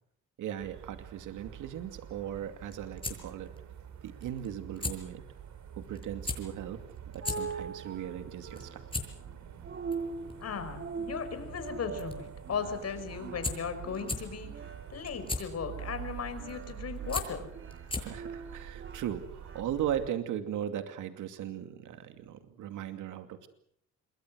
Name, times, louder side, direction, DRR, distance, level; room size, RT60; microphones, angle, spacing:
voice 1, 0.4-3.5 4.0-5.2 5.8-6.8 7.1-8.8 18.0-23.5, right 10 dB, 85° right, 8 dB, 2.6 m, -37 dB
sound 1, 0.6-20.1, right 9 dB, 65° right, 3.5 m, -47 dB
sound 2, 2.5-18.3, left 3 dB, 15° left, 6.7 m, -41 dB
sound 3, 6.8-19.6, right 4 dB, 40° right, 2.5 m, -43 dB
voice 2, 10.4-14.6 14.9-17.5, left 6 dB, 55° left, 10 dB, 5.4 m, -37 dB
28.0 x 22.5 x 6.4 m, 0.66 s
cardioid pair, 90°, 30 cm